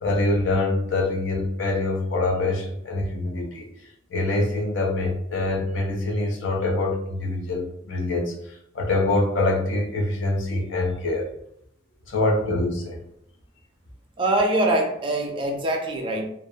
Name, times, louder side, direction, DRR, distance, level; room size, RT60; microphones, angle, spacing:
voice 1, 0.0-3.7 4.1-8.3 8.7-11.3 12.1-13.0, left 2 dB, 70° left, -1 dB, 0.5 m, -24 dB
voice 2, 14.2-16.2, right 1 dB, 25° right, 2 dB, 0.4 m, -23 dB
2.3 x 2.1 x 2.7 m, 0.73 s
head